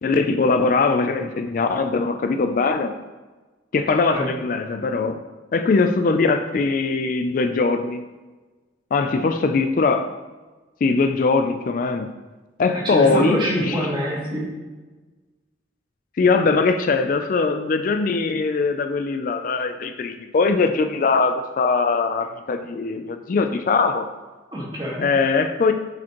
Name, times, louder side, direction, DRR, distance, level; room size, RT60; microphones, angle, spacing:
voice 1, 0.0-2.9 3.7-5.2 5.5-8.0 8.9-10.1 10.8-12.1 12.6-13.8 16.2-24.1 25.0-25.7, left 4 dB, 45° left, 8 dB, 0.3 m, -21 dB
voice 2, 12.8-14.5 24.5-25.1, equal, 25° right, -4 dB, 1.7 m, -25 dB
9.2 x 5.0 x 3.0 m, 1.3 s
head